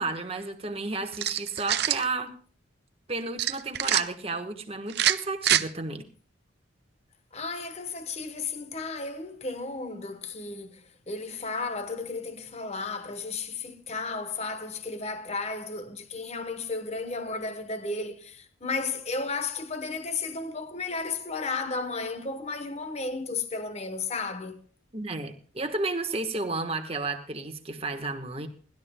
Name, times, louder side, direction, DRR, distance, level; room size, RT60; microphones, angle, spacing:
voice 1, 0.0-2.3 3.1-6.0 24.9-28.5, right 3 dB, 30° right, 1.2 m, -32 dB
sound 1, 1.1-2.0 3.4-4.0 4.9-5.6, right 11 dB, 55° right, 0.5 m, -25 dB
voice 2, 7.3-24.6, left 3 dB, 35° left, 1.0 m, -34 dB
29.0 x 12.0 x 2.2 m
head